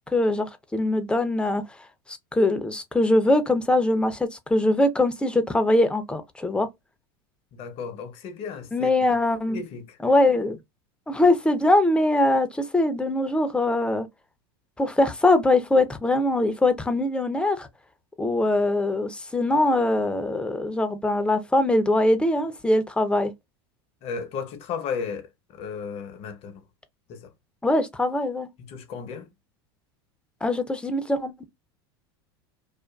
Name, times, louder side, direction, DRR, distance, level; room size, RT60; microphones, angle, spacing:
voice 1, 0.1-1.6 2.3-6.7 8.7-9.6 10.0-10.6 11.1-14.1 14.8-17.7 18.2-23.3 27.6-28.5 30.4-31.3, left 2 dB, 5° left, 0.5 m, -22 dB
voice 2, 7.5-9.1 9.5-10.0 24.0-26.6 27.1-27.3 28.6-29.3, left 6 dB, 50° left, 0.7 m, -34 dB
2.4 x 2.4 x 2.3 m
hypercardioid pair, 105°, 13 cm